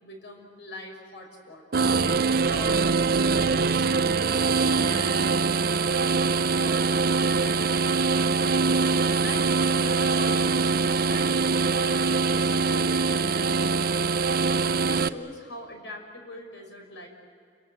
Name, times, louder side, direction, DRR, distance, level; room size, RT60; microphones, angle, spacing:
voice 1, 0.0-1.9 2.4-2.9 3.2-5.3 5.5-6.2 6.6-6.9 7.2-8.2 8.9-14.1 14.5-17.1, left 1 dB, 85° left, 2 dB, 5.7 m, -42 dB
sound 1, 1.7-15.1, right 4 dB, 55° right, 0.6 m, -23 dB
30.0 x 22.5 x 8.0 m, 2.3 s
head